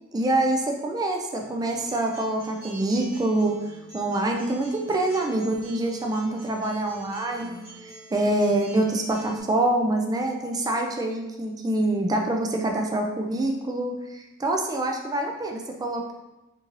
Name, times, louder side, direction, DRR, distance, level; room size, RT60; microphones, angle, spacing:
voice 1, 0.1-3.6 3.9-16.1, right 1 dB, 15° right, 2 dB, 0.3 m, -26 dB
Acoustic guitar, 1.4-9.4, right 3 dB, 45° right, 1.1 m, -45 dB
3.8 x 2.6 x 2.9 m, 1.0 s
head